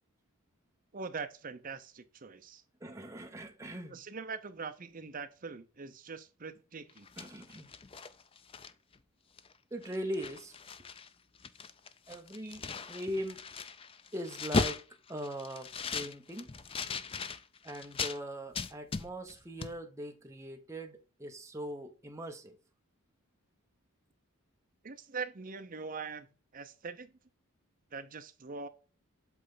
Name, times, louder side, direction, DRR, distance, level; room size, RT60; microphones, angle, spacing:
voice 1, 0.9-2.6 3.9-7.1 24.8-26.3 26.5-27.1 27.9-28.7, right 5 dB, 40° right, 0.6 m, -42 dB
voice 2, 2.8-4.0 7.2-7.7 9.7-10.6 12.1-13.4 14.1-14.8 15.1-16.7 17.6-22.6, equal, 15° right, 1.0 m, -41 dB
sound 1, 6.9-9.0 9.4-9.5 9.8-11.1 11.3-18.2 18.5-19.4 19.6-19.7, left 4 dB, 25° left, 0.4 m, -38 dB
8.1 x 3.2 x 3.9 m
head